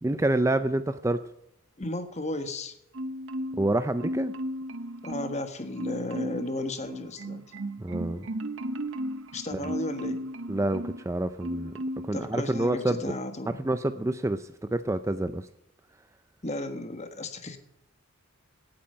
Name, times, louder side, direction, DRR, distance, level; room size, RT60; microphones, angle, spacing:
voice 1, 0.0-1.2 3.5-4.3 7.8-8.3 9.5-9.7 10.5-13.1 13.6-15.5, right 1 dB, 15° right, 11 dB, 0.4 m, -28 dB
voice 2, 1.8-2.7 5.0-7.4 9.3-10.2 12.1-13.6 16.4-17.6, left 1 dB, 30° left, 8 dB, 1.5 m, -34 dB
Marimba xylophone, 2.9-3.7 4.0-5.4 5.8-6.5 6.9-11.0 11.4-12.1 12.5-12.7, equal, 65° right, 0.8 m, -35 dB
18.0 x 8.6 x 5.6 m, 0.80 s
head